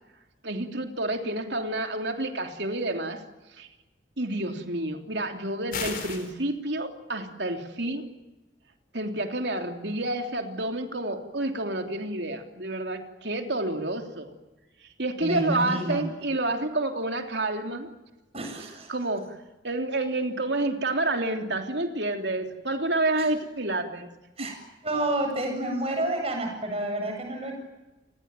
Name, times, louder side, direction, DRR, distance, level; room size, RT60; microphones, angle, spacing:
voice 1, 0.4-3.2 3.5-3.7 4.2-8.1 8.9-14.3 15.0-17.9 18.3-18.4 18.9-19.4 19.6-24.1 24.4-24.5, right 2 dB, 65° right, 5 dB, 3.3 m, -29 dB
sound 1, 5.7-6.3, left 5 dB, 50° left, 4.7 m, -33 dB
voice 2, 15.2-16.0 18.3-18.9 23.2-23.3 24.4-24.5 24.8-27.5, right 1 dB, 30° right, 3 dB, 7.9 m, -29 dB
29.5 x 21.0 x 9.2 m, 1.1 s
head